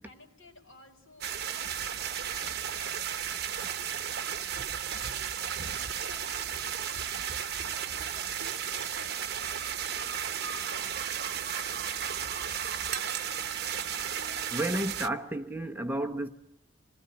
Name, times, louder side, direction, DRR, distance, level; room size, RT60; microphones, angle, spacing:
voice 1, 0.0-4.7 5.4-8.1 8.6-10.2 10.7-13.3, left 2 dB, 75° left, 5.4 m, -56 dB
sound 1, 1.2-15.1, right 8 dB, 55° right, 1.1 m, -34 dB
voice 2, 14.5-16.3, right 1 dB, 10° right, 1.0 m, -32 dB
27.0 x 20.5 x 9.9 m
head